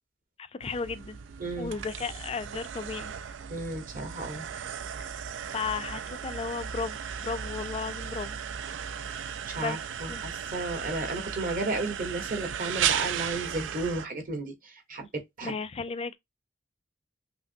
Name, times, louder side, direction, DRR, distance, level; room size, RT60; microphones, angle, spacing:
voice 1, 0.4-1.2 1.6-3.1 5.5-8.4 9.6-9.8 10.1-10.2 15.4-16.2, left 5 dB, 30° left, 0.4 m, -34 dB
sound 1, 0.6-14.1, right 8 dB, 85° right, 0.4 m, -35 dB
voice 2, 1.4-1.7 3.5-4.5 9.5-15.5, right 2 dB, 50° right, 1.2 m, -33 dB
5.8 x 2.0 x 2.6 m
head